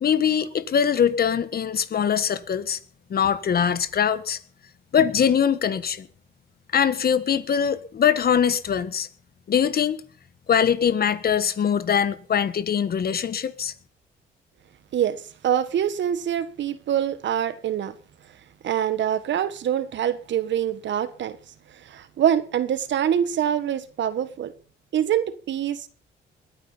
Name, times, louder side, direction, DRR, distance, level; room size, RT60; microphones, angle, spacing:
voice 1, 0.0-2.8 3.1-4.4 4.9-6.1 6.7-9.1 9.5-10.0 10.5-13.7, left 8 dB, 50° left, 1.4 m, -22 dB
voice 2, 14.9-18.0 18.6-21.4 21.7-24.5 24.9-25.9, right 10 dB, 65° right, 1.4 m, -25 dB
20.5 x 10.0 x 5.6 m
cardioid pair, 90°, 20 cm